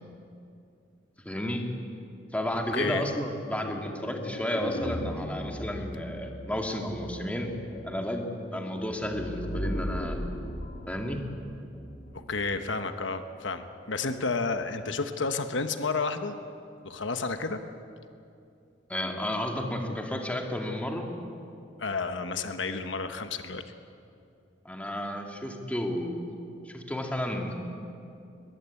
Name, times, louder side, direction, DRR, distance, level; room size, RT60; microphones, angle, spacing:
voice 1, 1.3-1.7 2.3-7.5 7.8-8.2 8.5-10.3 10.9-11.2 18.9-21.1 24.6-26.2 26.7-27.6, left 1 dB, 10° left, 2 dB, 2.3 m, -32 dB
voice 2, 2.7-3.1 12.1-16.4 16.8-17.6 21.8-23.6, left 4 dB, 80° left, 8 dB, 1.2 m, -31 dB
sound 1, 3.5-12.3, equal, 50° left, 2.6 m, -37 dB
22.0 x 21.0 x 8.5 m, 2.6 s
head